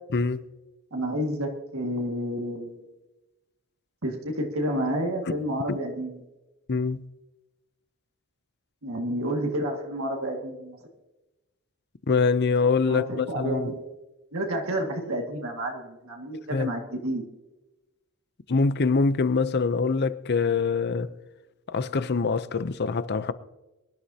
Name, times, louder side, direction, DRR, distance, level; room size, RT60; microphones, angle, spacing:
voice 1, 0.1-0.4 5.3-5.4 5.7-5.8 6.7-7.0 12.1-13.7 16.5-16.7 18.5-21.1 21.7-23.3, left 4 dB, 50° left, 0.6 m, -24 dB
voice 2, 0.9-2.8 4.0-6.2 8.8-10.8 12.9-13.9 14.3-17.2, right 1 dB, 70° right, 2.0 m, -30 dB
23.5 x 11.5 x 2.8 m
head